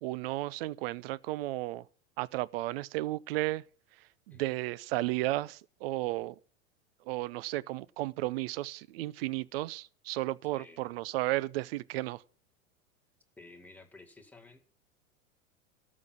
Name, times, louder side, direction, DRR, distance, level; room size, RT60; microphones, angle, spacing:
voice 1, 0.0-1.9 2.2-3.6 4.0-6.4 7.0-12.2, right 18 dB, 45° right, 0.7 m, -34 dB
voice 2, 10.6-11.0 13.4-14.7, left 2 dB, 5° left, 2.0 m, -54 dB
13.0 x 6.1 x 9.0 m
figure-of-eight pair, 90°, 40 cm